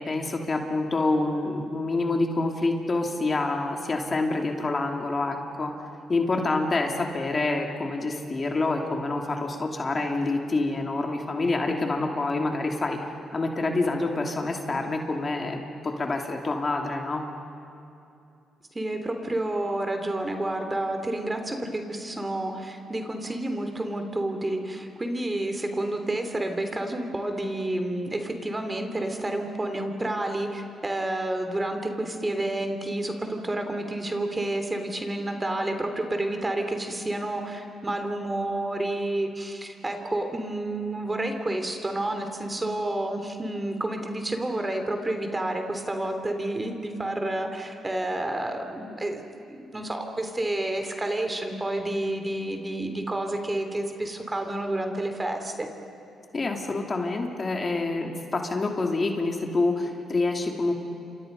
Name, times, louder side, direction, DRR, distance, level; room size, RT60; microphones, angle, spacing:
voice 1, 0.0-5.7 6.1-13.0 13.3-15.6 16.0-17.2 56.3-60.7, left 2 dB, 40° left, 2 dB, 3.0 m, -27 dB
voice 2, 18.7-49.3 49.6-55.7, right 1 dB, 20° right, 5 dB, 3.1 m, -30 dB
29.5 x 26.5 x 5.5 m, 2.7 s
supercardioid pair, 65°, 0 cm